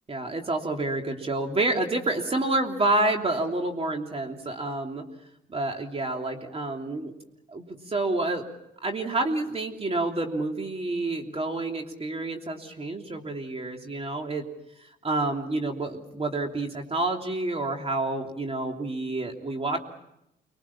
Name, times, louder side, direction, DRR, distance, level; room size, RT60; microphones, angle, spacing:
voice 1, 0.1-5.0 5.5-7.1 7.5-8.4 8.8-14.4 14.8-19.8, right 2 dB, 30° right, 3 dB, 3.1 m, -28 dB
25.5 x 22.5 x 7.2 m, 0.83 s
cardioid pair, 90°, 20 cm